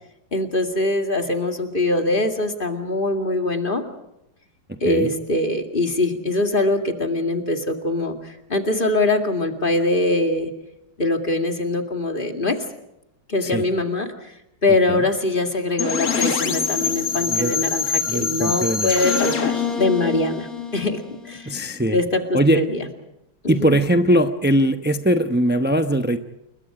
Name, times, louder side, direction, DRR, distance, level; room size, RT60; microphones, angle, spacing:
voice 1, 0.3-3.8 4.8-10.5 11.0-12.6 13.3-14.1 14.6-21.0 21.2-21.5 21.9-22.8 23.4-23.8, left 2 dB, 25° left, 5 dB, 2.4 m, -23 dB
voice 2, 4.7-5.1 13.4-13.6 14.9-15.0 17.3-17.5 18.1-18.9 21.4-22.0 22.3-22.6 23.5-26.2, right 1 dB, 15° right, 7 dB, 0.3 m, -20 dB
sound 1, 15.8-21.6, left 5 dB, 50° left, 2.1 m, -25 dB
29.0 x 22.5 x 5.0 m, 0.86 s
omnidirectional pair, 2.0 m